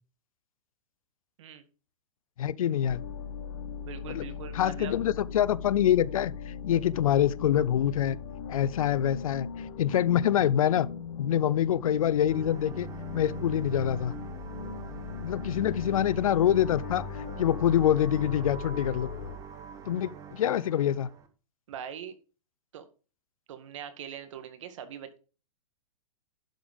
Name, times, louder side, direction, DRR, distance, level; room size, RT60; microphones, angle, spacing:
voice 1, 2.4-3.0 4.1-4.3 4.5-8.2 8.5-10.9 11.2-12.9 13.1-14.2 15.2-19.1 19.9-21.1, left 10 dB, 80° left, 0.6 m, -26 dB
sound 1, 2.9-19.4, left 7 dB, 45° left, 1.2 m, -39 dB
voice 2, 3.8-5.0 21.7-22.2 22.7-22.8 23.5-25.2, right 9 dB, 60° right, 1.9 m, -41 dB
sound 2, 12.3-21.3, right 9 dB, 20° right, 1.2 m, -43 dB
11.5 x 5.2 x 5.1 m
hypercardioid pair, 140°, 18 cm